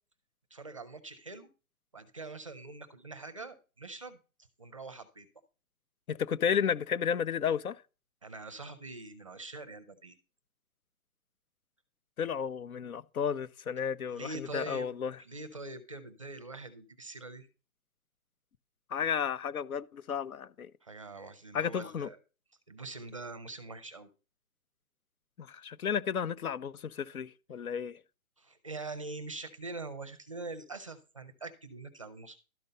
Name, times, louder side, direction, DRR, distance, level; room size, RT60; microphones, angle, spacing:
voice 1, 0.5-1.5 1.9-4.2 4.6-5.3 8.2-10.2 14.1-14.9 15.2-17.5 20.8-22.2 22.7-24.1 28.4-32.4, right 3 dB, 25° right, 0.6 m, -44 dB
voice 2, 6.1-7.8 12.2-15.2 18.9-20.7 21.5-22.1 25.4-28.0, left 7 dB, 75° left, 1.0 m, -32 dB
12.5 x 5.3 x 5.5 m
hypercardioid pair, 170°, 43 cm